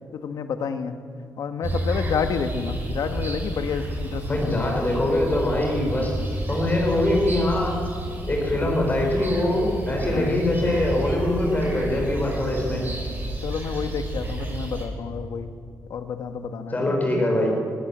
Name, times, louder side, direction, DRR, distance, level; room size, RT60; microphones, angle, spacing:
voice 1, 0.1-1.0 1.4-4.7 10.1-10.4 13.4-15.5 15.9-17.0, left 6 dB, 70° left, 8 dB, 1.7 m, -29 dB
sound 1, 1.6-14.9, right 1 dB, 30° right, 5.5 m, -31 dB
voice 2, 4.3-7.7 8.3-12.8 16.7-17.5, left 1 dB, 25° left, 0 dB, 5.9 m, -23 dB
19.0 x 18.5 x 7.6 m, 2.3 s
cardioid pair, 105°, 7 cm